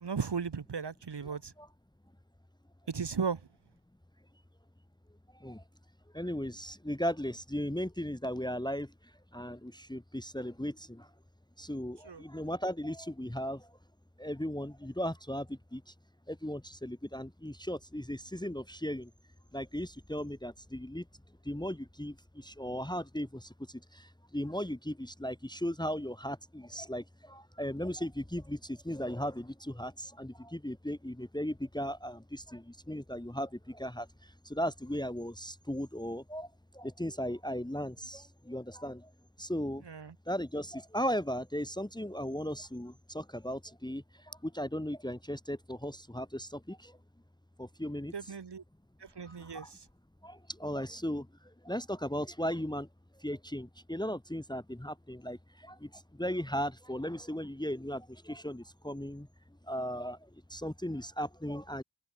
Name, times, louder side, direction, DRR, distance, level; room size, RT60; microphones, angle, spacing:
voice 1, 0.0-1.5 2.9-3.4 12.1-12.2 39.9-40.1 48.1-48.6 49.0-49.8, right 6 dB, 55° right, 1.2 m, -36 dB
voice 2, 1.2-1.7 5.3-5.6 6.1-8.9 9.3-11.1 11.6-13.8 14.2-15.9 16.3-19.1 19.5-21.1 21.4-39.1 39.4-39.8 40.3-47.0 47.6-48.1 49.2-49.7 50.2-51.3 51.6-52.9 53.2-59.3 59.7-61.8, equal, 10° left, 1.5 m, -37 dB
wide cardioid pair, 50°, 49 cm